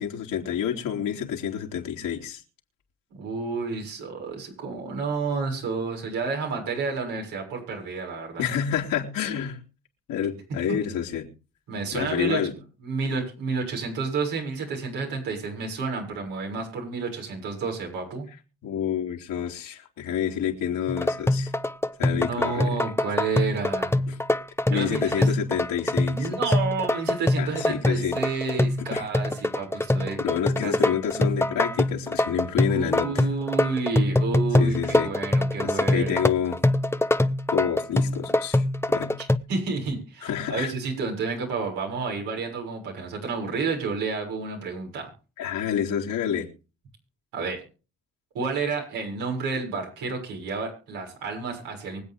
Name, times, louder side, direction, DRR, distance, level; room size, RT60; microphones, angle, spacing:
voice 1, 0.0-2.4 8.4-9.6 10.1-11.3 11.9-12.5 18.6-21.5 22.0-22.8 24.1-24.2 24.7-26.3 27.4-28.2 28.8-29.1 30.2-33.3 34.6-35.1 35.6-36.6 37.5-39.1 40.2-40.7 45.4-46.5, left 8 dB, 80° left, 3.2 m, -28 dB
voice 2, 3.1-8.4 10.7-10.8 11.7-12.5 12.8-18.3 22.0-24.0 24.7-25.3 26.1-30.2 30.6-30.7 32.7-36.2 39.2-45.1 47.3-47.6 48.3-52.0, right 4 dB, 85° right, 6.7 m, -30 dB
sound 1, 20.9-39.4, left 1 dB, 5° left, 1.0 m, -24 dB
24.5 x 8.3 x 3.6 m
supercardioid pair, 55°, 33 cm